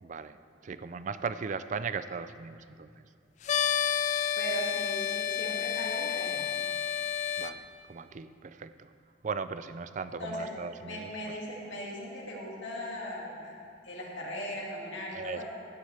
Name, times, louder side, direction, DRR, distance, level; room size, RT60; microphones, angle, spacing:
voice 1, 0.0-2.9 7.4-8.9 9.2-11.1 15.1-15.4, right 5 dB, 40° right, 12 dB, 0.4 m, -38 dB
sound 1, 3.4-7.5, left 8 dB, 40° left, 0.3 m, -30 dB
voice 2, 4.4-6.5 10.2-10.5 10.8-13.5 13.8-15.4, equal, 80° left, -3 dB, 2.2 m, -38 dB
16.0 x 9.4 x 3.4 m, 2.5 s
head